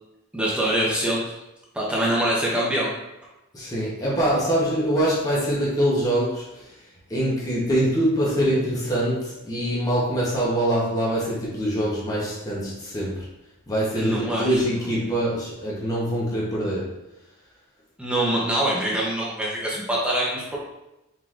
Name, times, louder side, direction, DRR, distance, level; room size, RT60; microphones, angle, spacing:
voice 1, 0.3-1.2 1.7-2.9 14.0-14.8 18.0-20.6, right 1 dB, 5° right, -5 dB, 0.8 m, -24 dB
voice 2, 3.5-6.7 7.1-13.3 13.7-17.0, equal, 15° left, -6 dB, 0.9 m, -24 dB
4.5 x 3.7 x 2.5 m, 0.94 s
head